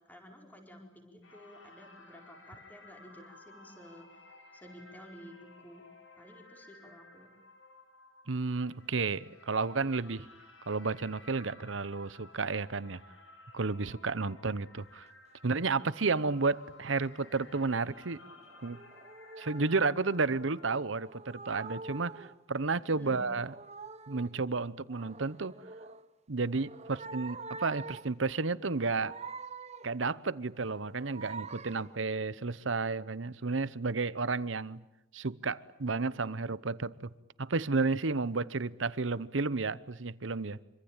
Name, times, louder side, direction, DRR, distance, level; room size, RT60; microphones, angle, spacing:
voice 1, 0.0-5.8 6.1-7.3 22.9-23.2, equal, 10° left, 4.5 m, -52 dB
sound 1, 1.2-20.8, left 3 dB, 75° left, 5.8 m, -56 dB
voice 2, 8.3-10.3 10.7-13.0 13.5-15.0 15.4-18.2 18.6-18.8 19.4-23.5 24.1-25.5 26.3-29.2 29.8-34.8 35.1-37.1 37.4-40.6, right 4 dB, 70° right, 1.0 m, -32 dB
sound 2, 15.5-15.8 17.1-17.5 18.0-20.0 20.6-22.4 22.9-24.4 24.9-26.1 26.5-28.2 28.6-30.0 30.5-32.0, right 4 dB, 35° right, 1.1 m, -46 dB
26.0 x 25.0 x 9.0 m
head